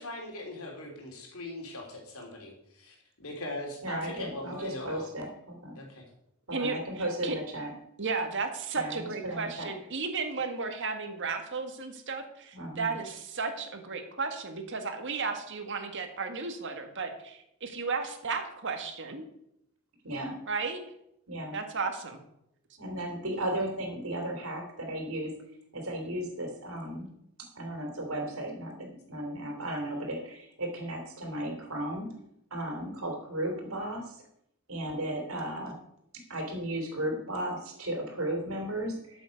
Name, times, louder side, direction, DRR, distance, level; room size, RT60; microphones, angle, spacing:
voice 1, 0.0-5.0 5.7-6.0, left 2 dB, 75° left, 0 dB, 3.3 m, -40 dB
voice 2, 3.8-5.8 6.5-7.7 8.7-9.7 12.5-12.9 20.0-20.4 21.3-21.6 22.8-25.3 25.7-27.1 27.5-32.1 32.5-34.2 34.7-35.7 36.3-39.2, right 1 dB, 75° right, 2 dB, 3.1 m, -35 dB
voice 3, 6.5-7.4 8.0-19.3 20.5-20.8 21.5-22.2, right 4 dB, 55° right, 6 dB, 1.7 m, -34 dB
13.0 x 7.2 x 5.3 m, 0.77 s
head